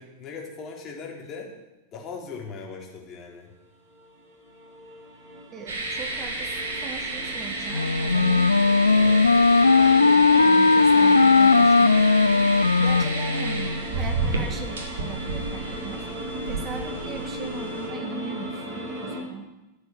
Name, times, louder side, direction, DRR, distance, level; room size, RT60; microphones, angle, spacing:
voice 1, 0.0-1.5 1.9-3.5 8.9-9.2, left 5 dB, 30° left, 0 dB, 3.6 m, -39 dB
sound 1, 3.9-19.2, equal, 50° right, 7.1 m, -37 dB
voice 2, 5.5-8.5 8.8-12.1 12.8-16.1 16.5-19.5, right 6 dB, 25° right, 6 dB, 1.4 m, -39 dB
sound 2, 5.7-17.9, right 2 dB, 65° right, 2.7 m, -32 dB
Wind instrument woodwind instrument, 7.7-13.8, left 4 dB, 80° left, 0.4 m, -18 dB
13.5 x 7.9 x 9.1 m, 1.0 s
figure-of-eight pair, 90°, 0 cm